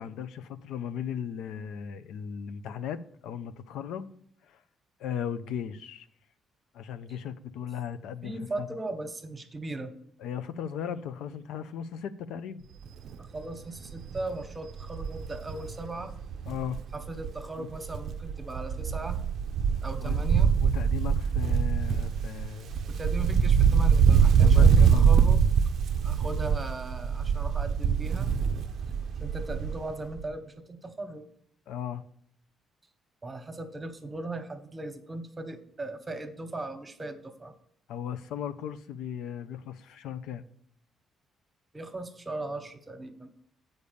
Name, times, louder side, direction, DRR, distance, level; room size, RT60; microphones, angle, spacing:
voice 1, 0.0-4.1 4.4-4.6 5.0-6.1 6.7-8.7 10.2-12.7 16.5-16.8 17.6-17.7 20.0-20.1 20.6-22.8 24.4-25.1 31.7-32.0 37.9-40.4, left 8 dB, 85° left, 0.4 m, -37 dB
voice 2, 8.2-9.9 13.2-16.1 16.9-19.2 19.8-20.5 22.8-25.4 26.0-28.3 29.2-31.3 33.2-37.5 41.7-43.3, right 2 dB, 25° right, 1.1 m, -38 dB
Wind, 12.9-13.1 13.5-13.6 13.9-17.4 17.7-29.9 30.2-30.3, right 7 dB, 65° right, 0.4 m, -24 dB
7.0 x 5.3 x 6.8 m
cardioid pair, 90°, 0 cm